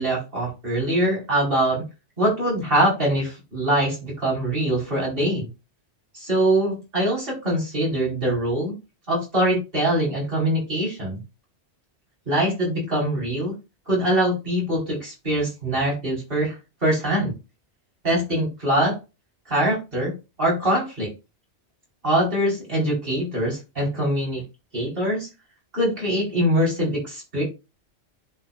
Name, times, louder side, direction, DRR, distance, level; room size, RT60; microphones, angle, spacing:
voice 1, 0.0-1.8 2.2-5.5 6.1-8.7 9.1-11.2 12.3-13.5 13.9-16.5 16.8-17.3 18.0-19.0 19.5-20.1 20.4-21.1 22.0-24.4 24.7-25.3 25.7-27.4, right 1 dB, 55° right, -4 dB, 4.8 m, -23 dB
11.0 x 5.3 x 2.4 m, 0.27 s
omnidirectional pair, 1.2 m